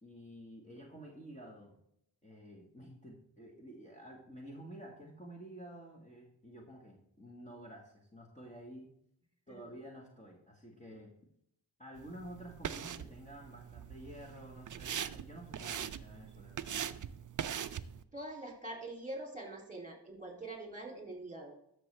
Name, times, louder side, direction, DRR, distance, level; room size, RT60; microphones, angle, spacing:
voice 1, 0.0-1.8 2.2-8.9 9.5-11.1 11.8-16.8, equal, 15° left, -1 dB, 1.6 m, -51 dB
sound 1, 12.0-18.0, right 8 dB, 45° right, 0.5 m, -42 dB
voice 2, 18.1-21.6, right 2 dB, 15° right, 0 dB, 2.8 m, -44 dB
12.5 x 6.4 x 3.3 m, 0.72 s
wide cardioid pair, 70°, 44 cm